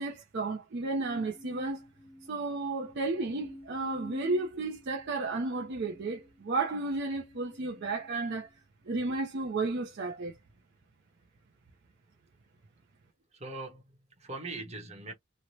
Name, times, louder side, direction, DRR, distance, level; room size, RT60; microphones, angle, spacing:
voice 1, 0.0-1.8 2.3-8.5 8.9-10.4, right 3 dB, 50° right, 0.5 m, -33 dB
sound 1, 1.0-8.4 9.1-9.6, equal, 15° left, 1.0 m, -50 dB
voice 2, 13.3-15.1, right 2 dB, 30° right, 0.8 m, -41 dB
3.0 x 2.1 x 2.7 m
head